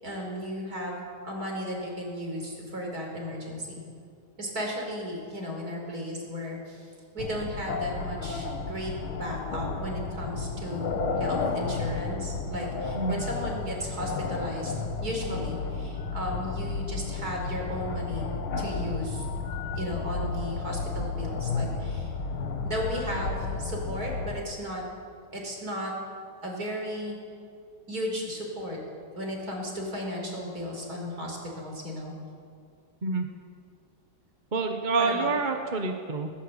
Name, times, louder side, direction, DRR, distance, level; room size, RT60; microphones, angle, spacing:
voice 1, 0.0-3.8 4.4-14.7 15.0-19.3 19.7-22.1 22.6-24.8 25.3-25.9 26.4-27.2 27.9-28.8 29.2-32.1 35.0-35.3, equal, 45° right, 0 dB, 5.4 m, -35 dB
sound 1, 7.2-24.4, left 4 dB, 75° left, 2.3 m, -32 dB
voice 2, 34.5-36.3, right 4 dB, 30° right, 4 dB, 1.1 m, -27 dB
20.0 x 18.5 x 8.1 m, 2.3 s
omnidirectional pair, 2.3 m